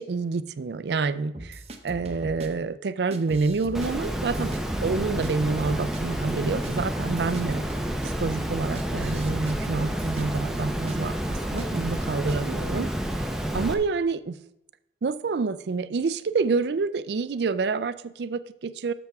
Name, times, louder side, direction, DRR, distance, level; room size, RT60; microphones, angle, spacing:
voice 1, 0.0-4.5 4.8-7.6 8.2-13.2 13.5-14.4 15.0-18.9, right 4 dB, 70° right, 16 dB, 0.4 m, -28 dB
sound 1, 1.3-2.5 3.1-3.9 4.2-5.3 5.6-6.3 6.6-6.7 7.0-11.0 11.2-12.0 12.3-12.5, right 1 dB, 35° right, 0.8 m, -40 dB
Water, 3.7-13.7, equal, 5° right, 0.7 m, -29 dB
12.5 x 6.9 x 3.5 m, 0.83 s
head